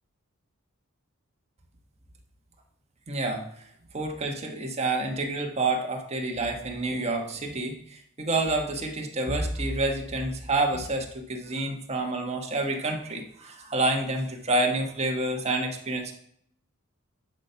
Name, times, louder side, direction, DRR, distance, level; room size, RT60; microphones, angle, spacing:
voice 1, 3.1-3.4 3.9-16.1, right 2 dB, 30° right, 2 dB, 1.4 m, -28 dB
10.5 x 4.4 x 5.8 m, 0.66 s
head